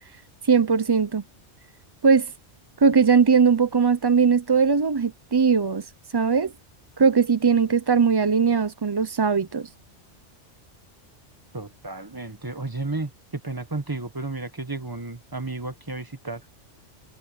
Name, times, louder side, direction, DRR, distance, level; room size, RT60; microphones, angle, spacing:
voice 1, 0.4-1.2 2.0-2.3 2.8-5.9 6.1-6.5 7.0-9.7, right 5 dB, 35° right, 0.4 m, -20 dB
voice 2, 11.5-16.4, right 3 dB, 20° right, 1.3 m, -33 dB
omnidirectional pair, 1.3 m